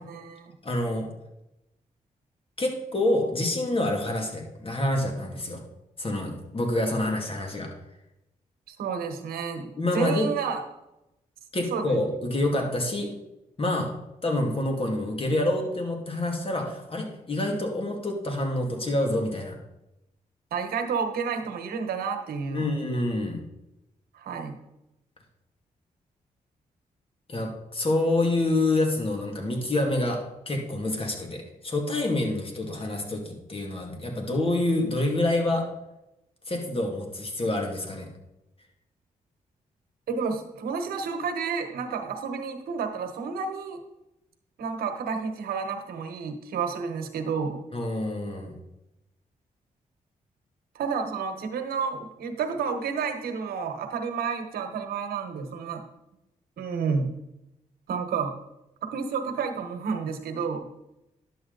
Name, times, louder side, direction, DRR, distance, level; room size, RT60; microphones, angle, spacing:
voice 1, 0.1-0.5 8.7-10.6 11.7-12.0 20.5-22.6 24.1-24.6 40.1-43.8 44.6-47.6 50.7-55.8 56.6-57.1 57.9-58.4 58.8-60.7, right 5 dB, 90° right, 6 dB, 1.2 m, -30 dB
voice 2, 0.6-1.1 2.6-5.6 6.0-7.7 9.8-10.3 11.5-13.1 13.6-13.9 14.2-19.6 22.5-23.4 27.3-35.7 36.5-38.1 47.7-48.5, left 1 dB, 40° left, 2 dB, 2.4 m, -27 dB
11.0 x 7.5 x 4.0 m, 0.90 s
cardioid pair, 60°, 15 cm